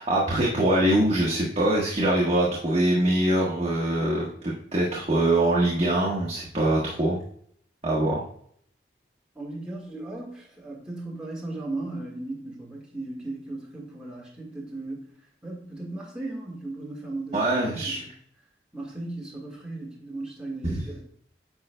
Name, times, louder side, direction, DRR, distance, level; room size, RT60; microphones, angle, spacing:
voice 1, 0.0-7.2 7.8-8.2 17.3-18.0 20.7-20.8, right 1 dB, 35° right, -4 dB, 1.2 m, -23 dB
voice 2, 9.3-15.1 15.4-18.1 18.7-21.0, right 2 dB, 5° right, -4 dB, 1.7 m, -36 dB
9.3 x 5.5 x 2.2 m, 0.64 s
head